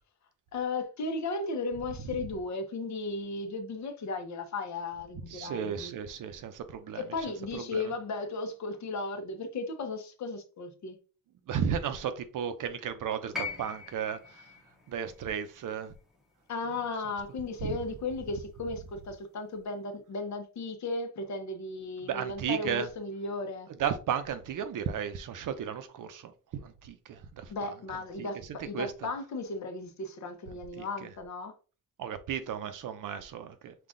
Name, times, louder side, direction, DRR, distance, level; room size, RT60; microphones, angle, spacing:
voice 1, 0.5-5.9 6.9-11.0 16.5-23.7 27.5-31.5, left 3 dB, 50° left, 0.9 m, -35 dB
voice 2, 5.3-7.0 7.7-7.9 11.5-14.4 14.9-15.9 17.6-17.7 22.0-22.9 23.8-27.7 28.2-28.3 28.7-28.9 30.8-31.1 32.0-33.7, right 8 dB, 60° right, 0.7 m, -34 dB
sound 1, 13.3-17.5 18.7-18.8, left 4 dB, ahead, 0.8 m, -42 dB
5.7 x 2.4 x 3.7 m
cardioid pair, 160°, 35 cm